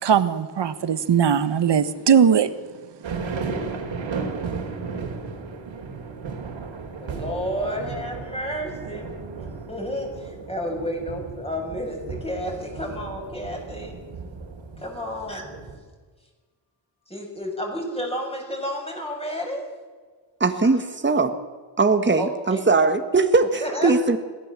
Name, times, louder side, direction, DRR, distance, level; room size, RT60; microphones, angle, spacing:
voice 1, 0.0-2.5, right 7 dB, 65° right, 12 dB, 1.5 m, -19 dB
sound 1, 3.0-15.8, right 4 dB, 85° right, 4.0 m, -34 dB
voice 2, 7.0-9.1 9.7-14.0 14.8-15.5 17.1-19.6 22.2-22.6 23.6-23.9, equal, 15° left, 1 dB, 6.9 m, -31 dB
voice 3, 20.4-21.3 21.8-24.2, right 3 dB, 25° right, 7 dB, 1.8 m, -20 dB
22.5 x 16.5 x 7.6 m, 1.5 s
cardioid pair, 90°, 45 cm